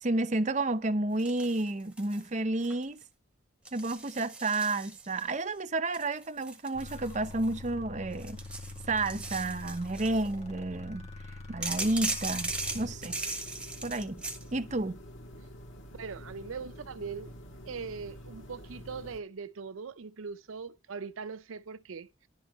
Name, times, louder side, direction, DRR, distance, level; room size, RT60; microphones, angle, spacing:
voice 1, 0.0-3.0 3.7-8.4 8.9-11.1 11.5-13.2 13.8-14.2 14.5-15.0, right 2 dB, 35° right, 0.7 m, -31 dB
sound 1, 1.2-2.3 2.6-3.0 3.7-5.3 5.9-7.7 8.1-10.3 11.6-14.4, right 2 dB, 5° right, 1.3 m, -38 dB
sound 2, 6.7-13.0, left 2 dB, 30° left, 1.8 m, -44 dB
sound 3, 12.5-19.2, equal, 65° left, 1.8 m, -48 dB
voice 2, 16.0-17.3 17.7-22.1, right 5 dB, 80° right, 0.5 m, -40 dB
11.0 x 4.3 x 7.8 m
head